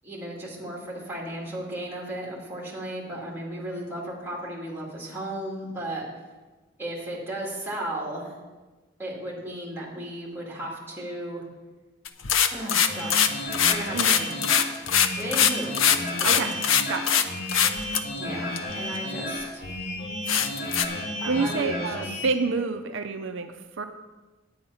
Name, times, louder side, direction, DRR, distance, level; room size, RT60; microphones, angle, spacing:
voice 1, 0.0-6.0 6.8-8.4 9.0-11.4 12.5-14.3 15.2-15.9 16.3-16.5 18.2-19.6 21.2-22.2, right 1 dB, 10° right, -3 dB, 2.4 m, -35 dB
sound 1, 12.1-17.2 17.5-18.0 18.6-18.7 19.2-19.3 19.6-19.7 20.3-20.9, left 8 dB, 90° left, 0.7 m, -21 dB
sound 2, 12.9-22.3, left 1 dB, 55° left, 2.3 m, -33 dB
voice 2, 16.2-16.5 16.9-17.2 21.3-23.8, right 4 dB, 70° right, 7 dB, 0.5 m, -28 dB
9.5 x 8.6 x 5.6 m, 1.2 s
head